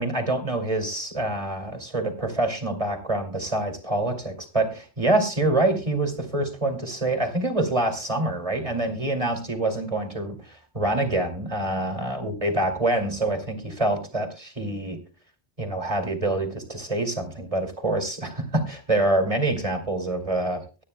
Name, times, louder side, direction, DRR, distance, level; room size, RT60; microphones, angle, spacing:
voice 1, 0.0-15.0 15.6-20.6, right 2 dB, 30° right, 5 dB, 2.6 m, -26 dB
23.5 x 9.7 x 2.2 m, 0.32 s
omnidirectional pair, 1.2 m